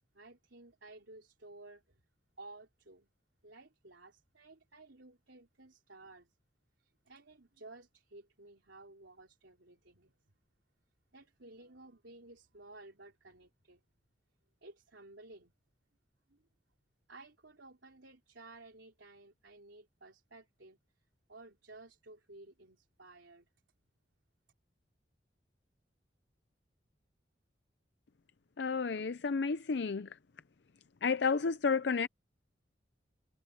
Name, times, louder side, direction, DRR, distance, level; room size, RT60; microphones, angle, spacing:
voice 1, 0.1-2.0 2.4-3.1 3.4-6.3 6.8-10.2 11.1-13.8 14.6-15.5 16.3-16.4 17.1-20.8 21.3-23.5, right 2 dB, 80° right, 3.5 m, -55 dB
voice 2, 28.6-30.1 31.0-32.1, left 5 dB, 65° left, 0.5 m, -31 dB
head